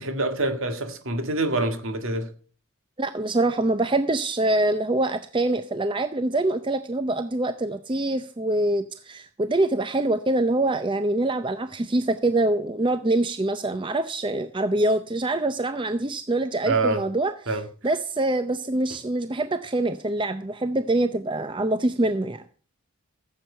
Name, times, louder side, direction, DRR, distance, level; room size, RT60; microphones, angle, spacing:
voice 1, 0.0-2.3 16.6-17.0 17.5-17.7, right 2 dB, 60° right, 1.9 m, -26 dB
voice 2, 3.0-17.3 17.8-22.4, right 2 dB, 20° right, 0.5 m, -24 dB
14.5 x 7.7 x 5.6 m
head